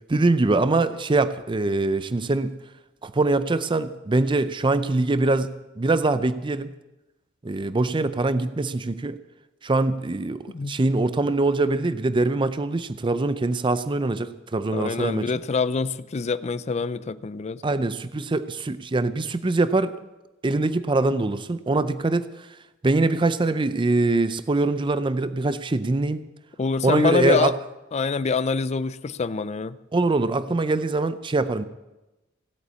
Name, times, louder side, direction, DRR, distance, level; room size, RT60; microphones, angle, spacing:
voice 1, 0.1-2.5 3.0-6.7 7.4-9.2 9.6-15.3 17.6-19.9 20.4-22.5 22.8-26.2 26.8-27.5 29.9-31.6, right 2 dB, 25° right, 13 dB, 0.5 m, -23 dB
voice 2, 14.7-17.6 26.6-27.5 27.9-29.8, left 4 dB, 35° left, 15 dB, 0.4 m, -25 dB
16.5 x 8.4 x 8.2 m, 1.0 s
head